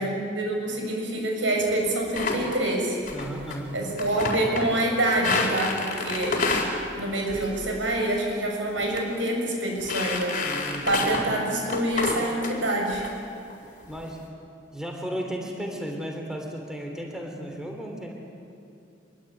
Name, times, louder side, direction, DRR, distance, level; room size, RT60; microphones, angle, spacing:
voice 1, 0.0-3.0 3.7-6.4 6.9-10.4 10.9-13.0, right 1 dB, 90° right, 1 dB, 7.1 m, -26 dB
sound 1, 2.1-2.6 3.1-3.6 3.9-4.8 5.1-6.7 7.3-7.6 7.9-8.2 8.8-9.0 9.3-9.4 9.8-11.3 11.7-12.5 12.9-13.1 13.5-14.0, left 3 dB, 45° left, 4.4 m, -29 dB
voice 2, 3.1-3.8 10.4-11.3 13.9-14.2 14.7-18.1, equal, 5° right, 1 dB, 3.4 m, -34 dB
26.5 x 22.0 x 9.2 m, 2.7 s
head